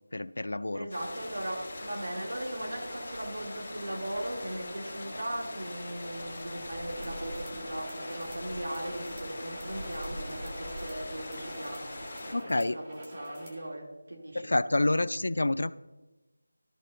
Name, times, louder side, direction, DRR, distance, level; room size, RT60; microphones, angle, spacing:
voice 1, 0.1-0.9 12.3-12.8 14.4-15.7, left 2 dB, 70° left, 16 dB, 0.3 m, -28 dB
voice 2, 0.7-14.5, right 1 dB, 75° right, 1 dB, 2.0 m, -38 dB
sound 1, 0.9-12.3, left 1 dB, 25° left, 2.3 m, -41 dB
sound 2, 6.8-13.7, equal, 15° right, 0.9 m, -48 dB
13.0 x 4.5 x 3.8 m, 1.1 s
figure-of-eight pair, 180°, 0 cm